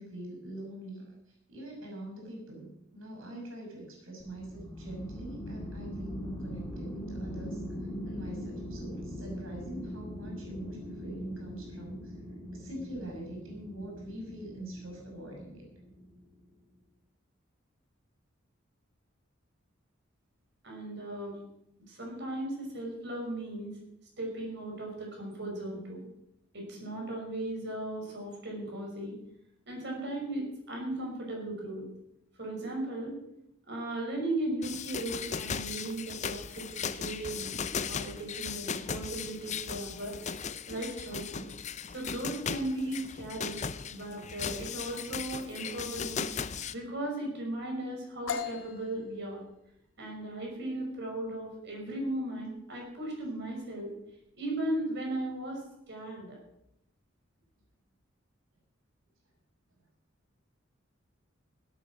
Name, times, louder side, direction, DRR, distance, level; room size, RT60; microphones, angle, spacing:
voice 1, 0.0-7.6 8.0-12.2 12.5-15.7, right 1 dB, 80° right, 0 dB, 6.4 m, -44 dB
sound 1, 4.2-16.3, equal, 15° left, 2.6 m, -41 dB
voice 2, 20.6-21.4 21.9-23.8 24.2-26.1 26.5-29.2 29.7-31.9 32.4-33.1 33.7-37.5 37.9-40.2 40.7-41.5 41.9-43.6 43.9-46.3 46.7-49.4 50.0-53.9 54.3-55.6 55.9-56.4, right 1 dB, 60° right, 0 dB, 5.8 m, -37 dB
sound 2, 34.6-46.7, left 6 dB, 35° left, 0.6 m, -37 dB
sound 3, 48.3-55.9, left 7 dB, 75° left, 1.5 m, -44 dB
16.5 x 10.0 x 6.3 m, 0.81 s
head